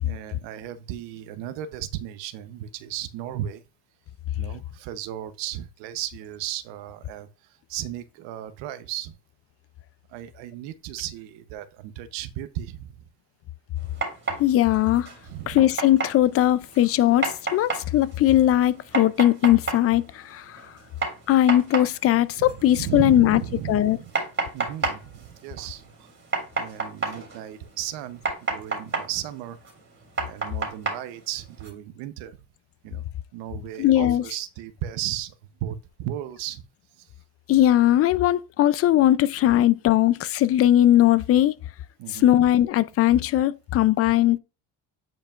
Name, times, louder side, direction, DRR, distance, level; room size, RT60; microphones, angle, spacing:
voice 1, 0.0-3.6 4.4-9.2 10.1-13.1 15.2-15.7 22.4-24.1 24.5-26.1 26.6-29.6 30.2-32.4 32.8-33.0 33.3-35.3 35.6-36.6 37.0-37.1 39.5-39.6 42.0-42.5, right 12 dB, 70° right, 0.9 m, -35 dB
sound 1, 13.8-31.7, right 3 dB, 25° right, 2.9 m, -33 dB
voice 2, 14.4-15.1 15.5-20.6 21.3-23.4 23.7-24.0 33.8-34.2 37.5-41.5 42.1-44.4, left 13 dB, 35° left, 0.4 m, -19 dB
9.0 x 5.2 x 2.4 m
supercardioid pair, 115°, 45 cm